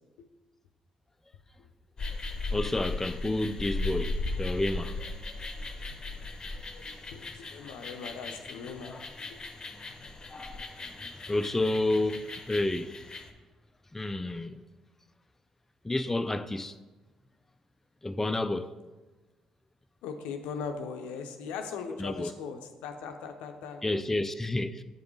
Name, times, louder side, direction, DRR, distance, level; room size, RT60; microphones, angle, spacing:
sound 1, 2.0-13.3, left 2 dB, 35° left, 0.8 m, -37 dB
voice 1, 2.5-5.0 10.3-13.1 13.9-14.6 15.8-16.8 18.0-18.7 21.9-22.3 23.8-24.8, left 2 dB, 15° left, 0.4 m, -30 dB
voice 2, 6.7-9.0 9.3-9.4 20.0-23.8, left 5 dB, 75° left, 0.6 m, -39 dB
8.0 x 5.0 x 3.2 m
hypercardioid pair, 50°, 2 cm